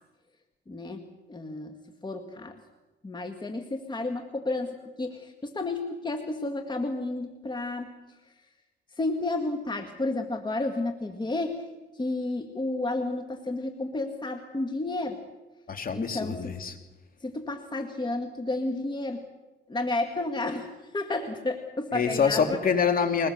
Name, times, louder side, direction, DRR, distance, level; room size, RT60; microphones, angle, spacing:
voice 1, 0.7-2.6 3.0-8.3 8.9-11.7 11.9-15.2 15.9-16.3 17.2-19.2 19.7-22.6, left 2 dB, 25° left, 5 dB, 1.9 m, -32 dB
voice 2, 15.7-16.8 21.9-23.3, left 6 dB, 45° left, 6 dB, 2.7 m, -25 dB
22.0 x 20.5 x 6.7 m, 1.1 s
cardioid pair, 90°, 20 cm